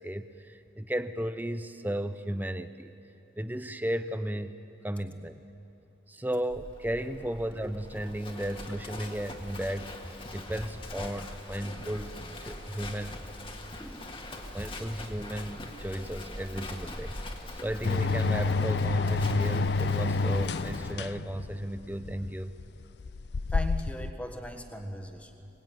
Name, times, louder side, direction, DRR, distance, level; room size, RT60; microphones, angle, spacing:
voice 1, 0.0-2.9 3.4-4.5 4.8-5.4 6.1-10.0 10.3-12.1 12.4-13.1 14.5-17.2 17.6-22.5, right 1 dB, 10° right, 11 dB, 0.7 m, -34 dB
Livestock farm animals working animals, 6.5-20.9, left 1 dB, 30° left, 1.8 m, -42 dB
sound 1, 17.8-24.1, left 3 dB, 65° left, 0.5 m, -29 dB
voice 2, 23.5-25.5, equal, 5° left, 5 dB, 1.5 m, -39 dB
23.5 x 20.5 x 9.3 m, 2.9 s
head